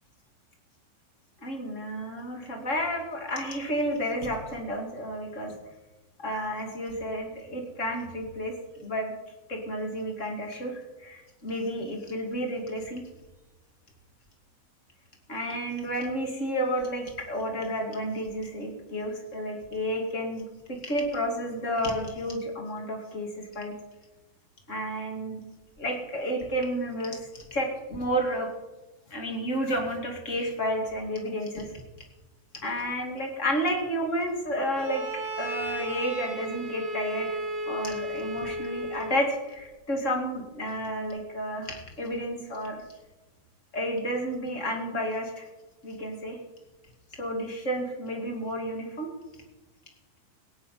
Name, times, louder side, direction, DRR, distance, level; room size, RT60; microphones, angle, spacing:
voice 1, 1.4-5.5 6.2-9.1 9.5-13.0 15.3-20.4 20.7-23.7 24.7-25.4 25.8-28.5 29.1-31.8 32.6-35.0 35.4-37.4 37.7-42.8 43.7-45.5 45.8-46.4 47.2-49.1, equal, 25° left, 1 dB, 2.6 m, -31 dB
Bowed string instrument, 34.8-39.4, right 1 dB, 35° right, 1.8 m, -34 dB
17.5 x 6.4 x 9.4 m, 1.1 s
omnidirectional pair, 3.9 m